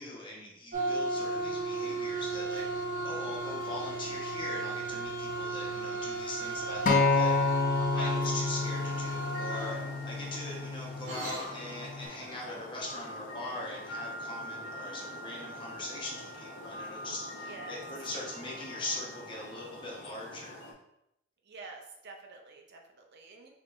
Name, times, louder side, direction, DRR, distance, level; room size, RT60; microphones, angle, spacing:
voice 1, 0.0-9.8 10.0-20.7, left 2 dB, 25° left, -3 dB, 1.1 m, -41 dB
sound 1, 0.7-11.7, right 2 dB, 75° right, 1.4 m, -35 dB
Acoustic guitar, 6.9-11.1 11.9-12.1, left 4 dB, 45° left, 0.5 m, -29 dB
voice 2, 7.8-8.2 17.5-17.8 21.5-23.5, right 3 dB, 55° right, 2 dB, 0.6 m, -47 dB
sound 2, 8.4-20.7, left 1 dB, 85° left, 1.3 m, -44 dB
4.9 x 3.6 x 2.5 m, 0.82 s
head